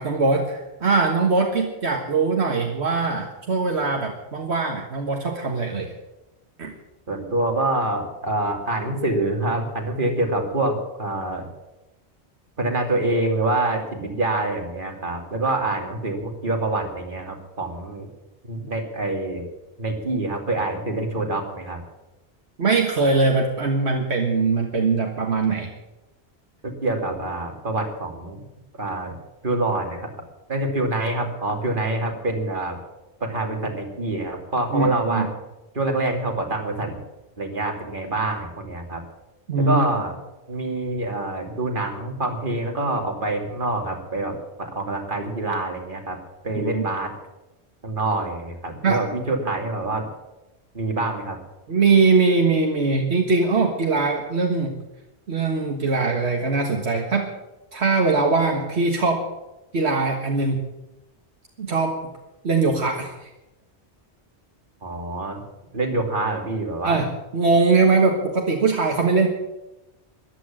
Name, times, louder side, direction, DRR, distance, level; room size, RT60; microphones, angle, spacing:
voice 1, 0.0-5.9 6.6-6.7 22.6-25.7 34.7-35.3 39.5-39.8 46.6-46.8 48.8-49.0 51.7-54.7 55.3-57.3 57.7-59.2 59.7-60.7 61.6-62.0 62.4-63.3 66.8-69.3, right 3 dB, 75° right, 1 dB, 1.8 m, -21 dB
voice 2, 7.1-11.5 12.6-18.1 18.4-19.4 19.8-21.8 26.6-28.4 28.8-29.2 29.4-30.1 30.5-32.8 33.2-35.3 35.7-37.0 37.4-39.0 39.5-40.1 40.5-46.2 46.4-47.1 47.8-50.1 50.7-51.4 64.8-65.4 65.7-67.0, right 2 dB, 50° right, 2 dB, 2.8 m, -26 dB
14.0 x 11.5 x 7.4 m, 0.98 s
omnidirectional pair, 1.1 m